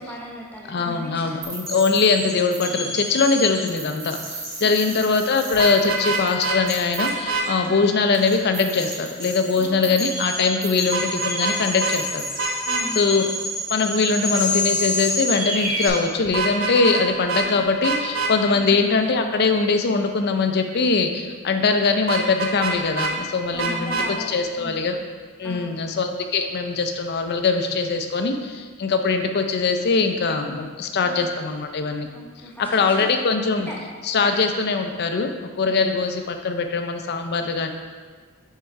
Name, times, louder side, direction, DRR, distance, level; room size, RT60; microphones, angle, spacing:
voice 1, 0.0-1.4 4.8-5.0 7.6-7.8 9.6-10.0 12.7-13.1 17.4-17.6 18.5-18.7 23.5-24.9 25.4-25.9 31.0-31.2 32.1-33.2 33.6-33.8 34.2-34.3 35.6-35.9, equal, 10° left, -5 dB, 0.9 m, -38 dB
voice 2, 0.7-12.2 12.9-13.3 13.7-25.0 25.4-32.1 32.6-33.7 34.0-35.3 35.6-37.7, left 4 dB, 50° left, 6 dB, 0.5 m, -22 dB
sound 1, 1.4-15.9, left 1 dB, 45° right, 1.2 m, -29 dB
Vehicle horn car horn honking, 5.5-6.6 7.0-7.5 10.9-11.5 11.8-11.9 12.4-12.8 16.2-17.0 17.3-17.5 17.8-18.3 22.1-23.1 23.6-24.1, right 4 dB, 65° right, 0.7 m, -25 dB
6.1 x 3.7 x 4.5 m, 1.5 s
head